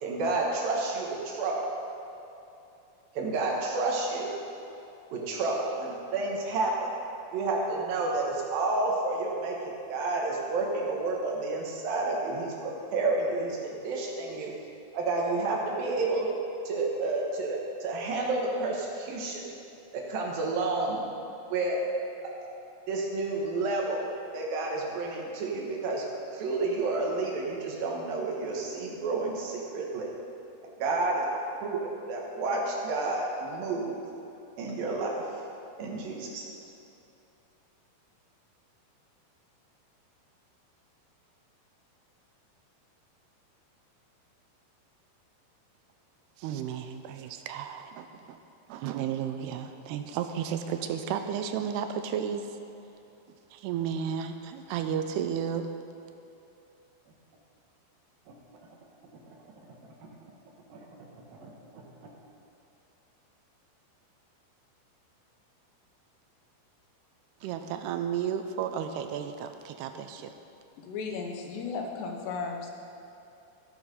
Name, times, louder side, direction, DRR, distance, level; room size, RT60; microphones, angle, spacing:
voice 1, 0.0-1.7 3.1-4.3 5.1-6.9 7.3-9.6 9.9-14.5 14.9-16.3 16.6-19.4 19.9-21.0 21.5-21.8 22.2-22.5 22.9-24.0 24.3-26.0 26.3-30.1 30.8-33.9 34.6-35.1 35.8-36.4 60.7-60.8 61.4-61.5, right 3 dB, 65° right, -2 dB, 2.9 m, -30 dB
voice 2, 46.4-48.4 48.7-52.6 53.5-55.7 67.4-70.3, right 8 dB, 85° right, 7 dB, 2.6 m, -33 dB
voice 3, 70.8-72.7, left 4 dB, 85° left, 1 dB, 3.3 m, -35 dB
16.5 x 6.4 x 5.3 m, 2.8 s
omnidirectional pair, 4.8 m